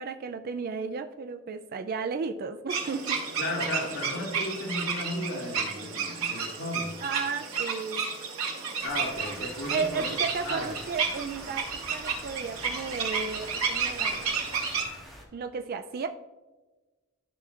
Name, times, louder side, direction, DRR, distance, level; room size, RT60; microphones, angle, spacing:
voice 1, 0.0-3.2 7.0-8.1 9.7-14.4 15.3-16.1, right 5 dB, 45° right, 7 dB, 0.4 m, -34 dB
sound 1, 2.7-14.8, right 5 dB, 90° right, 2.6 m, -32 dB
voice 2, 3.4-6.9 8.8-10.1 10.4-10.7, left 1 dB, 65° left, -2 dB, 1.7 m, -34 dB
sound 2, 8.8-15.2, equal, ahead, 1.6 m, -47 dB
13.5 x 6.0 x 2.4 m, 1.2 s
head